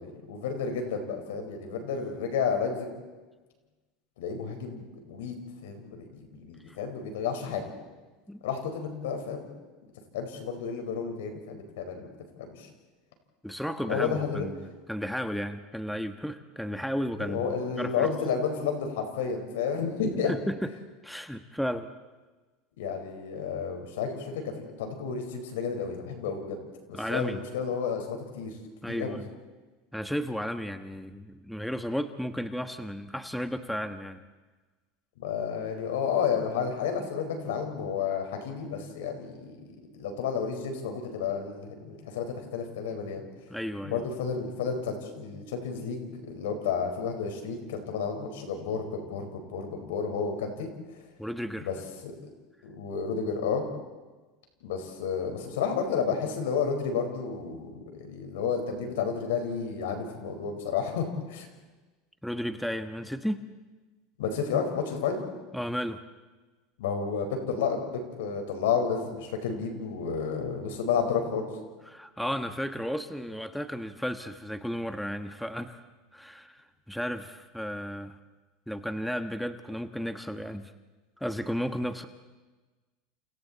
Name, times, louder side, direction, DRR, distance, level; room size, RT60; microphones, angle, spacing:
voice 1, 0.0-2.9 4.2-5.3 5.6-7.7 8.4-9.5 10.1-12.1 12.4-12.7 13.9-14.5 17.2-20.3 22.8-26.6 26.9-28.5 28.9-29.2 35.2-39.6 39.9-43.2 43.8-50.7 51.6-51.7 52.0-52.1 52.6-53.6 54.6-61.5 64.2-65.2 66.8-71.5, left 6 dB, 85° left, 5 dB, 4.8 m, -31 dB
voice 2, 13.4-17.5 17.8-18.1 20.3-20.7 21.0-21.9 26.9-27.4 28.8-29.3 29.9-34.2 43.5-44.0 51.2-51.7 62.2-63.4 65.5-66.0 71.9-75.8 76.1-78.2 78.7-80.7 81.2-82.1, equal, ahead, 8 dB, 1.4 m, -33 dB
29.5 x 29.0 x 4.2 m, 1.2 s
supercardioid pair, 105°, 0 cm